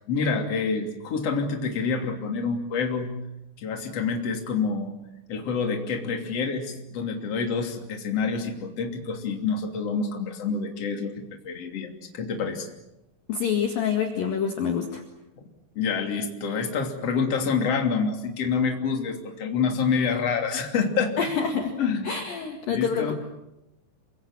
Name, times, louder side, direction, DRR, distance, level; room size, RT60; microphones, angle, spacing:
voice 1, 0.1-3.1 3.6-4.9 5.3-11.1 11.4-12.7 15.7-21.3 21.8-22.1 22.7-23.1, left 5 dB, 35° left, 3 dB, 3.4 m, -27 dB
voice 2, 13.3-15.0 21.2-21.7 22.0-23.1, left 7 dB, 55° left, 4 dB, 3.1 m, -26 dB
28.5 x 25.0 x 7.4 m, 0.88 s
omnidirectional pair, 5.7 m